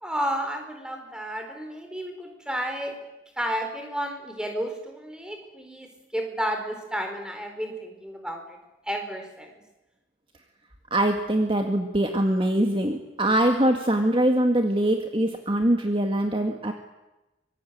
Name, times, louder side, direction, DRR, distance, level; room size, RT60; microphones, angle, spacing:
voice 1, 0.0-3.0 3.4-8.6 8.9-9.5, equal, 5° right, 4 dB, 4.5 m, -32 dB
voice 2, 10.9-16.7, right 1 dB, 25° right, 4 dB, 1.9 m, -23 dB
25.0 x 23.5 x 9.4 m, 1.0 s
head